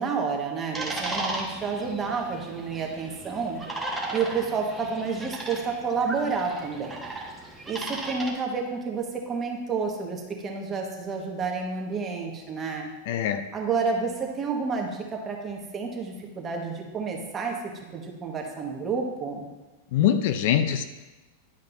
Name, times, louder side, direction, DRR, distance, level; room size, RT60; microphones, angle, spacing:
voice 1, 0.0-3.6 4.1-7.0 7.7-12.9 13.5-17.5 17.9-19.5, right 5 dB, 25° right, 0 dB, 1.5 m, -30 dB
sound 1, 0.7-8.3, right 2 dB, 10° right, 1.4 m, -36 dB
voice 2, 13.1-13.4 19.9-20.8, left 10 dB, 60° left, 9 dB, 0.5 m, -23 dB
11.0 x 5.2 x 2.7 m, 1.2 s
hypercardioid pair, 105°, 0 cm